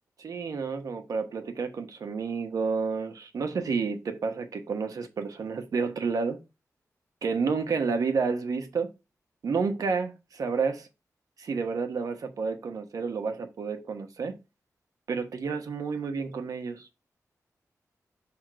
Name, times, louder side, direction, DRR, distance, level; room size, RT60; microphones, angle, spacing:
voice 1, 0.2-6.4 7.2-8.9 9.4-10.9 11.4-14.4 15.1-16.9, right 5 dB, 80° right, 1.1 m, -30 dB
6.1 x 3.6 x 5.0 m
wide cardioid pair, 155°, 6 cm